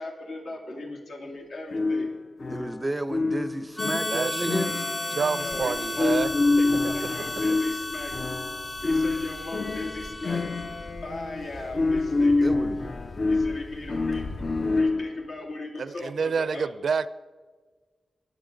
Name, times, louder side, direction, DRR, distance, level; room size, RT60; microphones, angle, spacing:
voice 1, 0.0-2.1 5.4-6.2 6.6-8.1 8.6-10.5 11.0-12.5 13.3-16.7, left 2 dB, 85° left, 2.5 m, -37 dB
sound 1, 1.7-15.3, left 3 dB, 45° left, 0.4 m, -27 dB
voice 2, 2.5-4.7 12.4-12.8, right 1 dB, 15° right, 0.5 m, -31 dB
Harmonica, 3.8-11.1, left 2 dB, 25° left, 0.8 m, -34 dB
voice 3, 4.1-4.7 5.1-6.3 15.8-17.1, right 5 dB, 70° right, 0.4 m, -28 dB
sound 2, 5.4-14.8, left 2 dB, 65° left, 4.6 m, -43 dB
20.5 x 7.5 x 3.9 m
wide cardioid pair, 130°, 0 cm